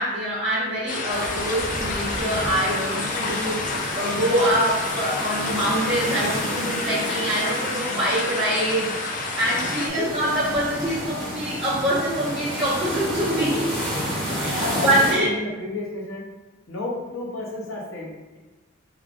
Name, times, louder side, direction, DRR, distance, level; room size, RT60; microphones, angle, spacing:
voice 1, 0.0-3.6 3.9-13.7 14.3-15.4, right 1 dB, 20° right, -13 dB, 0.8 m, -24 dB
sound 1, 0.9-9.9, left 3 dB, 40° left, 0.4 m, -30 dB
sound 2, 1.1-15.1, equal, ahead, 1.0 m, -31 dB
voice 2, 14.1-16.2 16.7-18.4, left 2 dB, 85° left, -2 dB, 0.8 m, -32 dB
3.2 x 2.3 x 3.7 m, 1.1 s
head